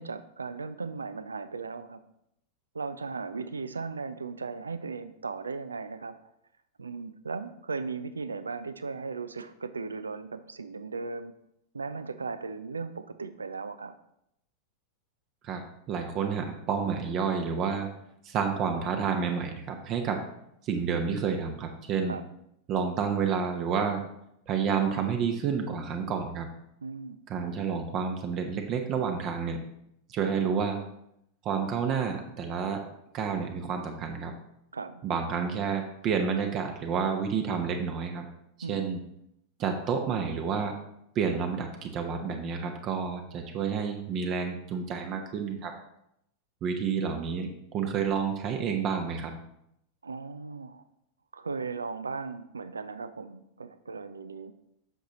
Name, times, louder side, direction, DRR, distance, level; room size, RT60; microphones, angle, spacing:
voice 1, 0.0-2.0 2.7-6.1 6.8-11.3 11.7-13.9 22.1-22.2 26.8-27.2 34.7-35.0 38.6-38.8 50.0-50.8 51.3-54.5, right 4 dB, 75° right, 12 dB, 0.4 m, -37 dB
voice 2, 15.4-17.9 18.2-20.2 20.6-22.1 22.7-24.0 24.5-26.5 27.3-29.6 30.1-30.8 31.4-32.9 33.1-34.3 35.0-38.3 38.7-39.0 39.6-40.8 41.1-45.7 46.6-49.4, right 6 dB, 35° right, 4 dB, 0.8 m, -29 dB
7.9 x 6.2 x 3.0 m, 0.78 s
figure-of-eight pair, 90°, 0 cm